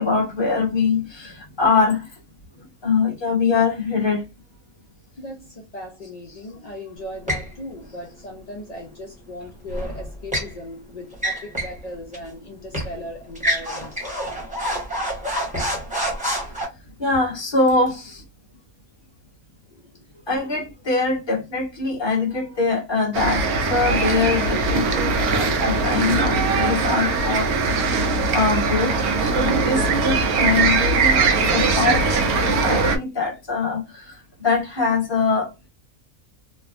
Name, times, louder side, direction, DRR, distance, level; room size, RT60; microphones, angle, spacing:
voice 1, 0.0-2.2 2.8-4.2 16.5-16.7 17.0-18.2 20.3-27.9 28.3-35.5, left 4 dB, 20° left, 1.2 m, -23 dB
voice 2, 5.2-14.0 19.7-20.1, left 1 dB, 60° left, 0.4 m, -37 dB
sound 1, 7.3-7.5 9.7-10.5 11.1-11.8 12.1-12.3 12.7-12.9 13.4-16.6, equal, 5° right, 1.0 m, -27 dB
sound 2, 23.1-33.0, right 4 dB, 85° right, 1.1 m, -20 dB
3.2 x 2.1 x 2.4 m
omnidirectional pair, 1.5 m